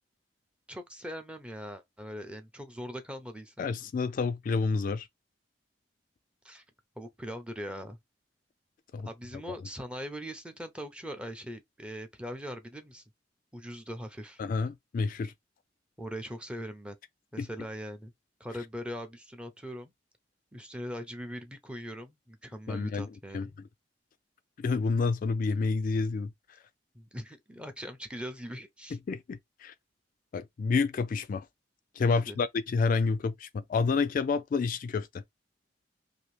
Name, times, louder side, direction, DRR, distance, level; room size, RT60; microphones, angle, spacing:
voice 1, 0.7-3.7 6.4-6.6 7.0-8.0 9.0-13.0 13.5-14.4 16.0-16.9 17.3-18.1 18.4-19.9 20.5-23.5 26.9-29.0 32.1-32.4, equal, 5° right, 0.6 m, -41 dB
voice 2, 3.6-5.1 8.9-9.1 14.4-15.3 17.4-17.5 22.7-23.1 23.3-23.5 24.6-26.3 29.1-29.7 30.3-31.5 32.0-35.1, left 4 dB, 50° left, 0.3 m, -29 dB
2.8 x 2.6 x 3.2 m
head